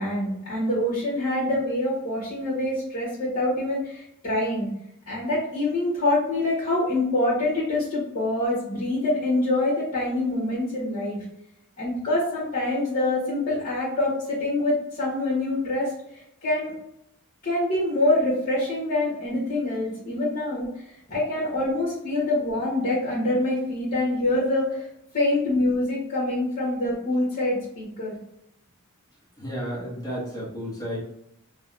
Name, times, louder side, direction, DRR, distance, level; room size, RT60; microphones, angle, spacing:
voice 1, 0.0-4.7 5.1-11.2 11.8-15.9 16.4-16.7 17.4-20.7 21.1-24.8 25.1-28.1, left 1 dB, 40° left, -8 dB, 1.4 m, -25 dB
voice 2, 29.4-31.0, equal, 15° left, -8 dB, 1.2 m, -32 dB
4.9 x 2.2 x 2.5 m, 0.77 s
head